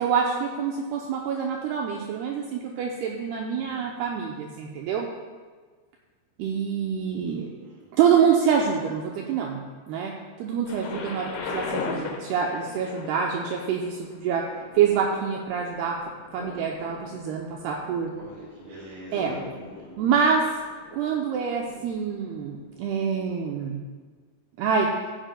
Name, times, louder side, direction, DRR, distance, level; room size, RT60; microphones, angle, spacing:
voice 1, 0.0-5.1 6.4-7.5 7.9-9.6 9.9-14.4 14.8-16.0 16.3-18.1 19.1-19.4 20.0-20.4 20.9-23.8 24.6-24.9, right 7 dB, 85° right, 0 dB, 2.3 m, -26 dB
voice 2, 3.6-4.1 7.3-7.9 18.2-20.0, right 1 dB, 60° right, -13 dB, 5.2 m, -46 dB
Thunder, 10.7-22.5 23.3-23.4, left 4 dB, 70° left, 2.9 m, -39 dB
15.0 x 10.0 x 2.2 m, 1.5 s
omnidirectional pair, 5.3 m